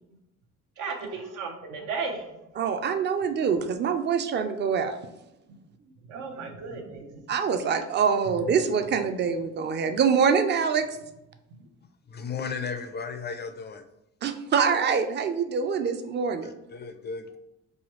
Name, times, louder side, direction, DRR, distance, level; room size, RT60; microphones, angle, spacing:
voice 1, 0.8-2.2 6.1-7.2, right 4 dB, 85° right, 3 dB, 0.8 m, -34 dB
voice 2, 2.6-5.0 7.3-10.9 14.2-16.5, right 6 dB, 35° right, 9 dB, 0.4 m, -25 dB
voice 3, 12.1-13.8 16.4-17.4, left 5 dB, 35° left, 8 dB, 0.4 m, -35 dB
4.7 x 2.3 x 3.0 m, 0.90 s
cardioid pair, 90°, 30 cm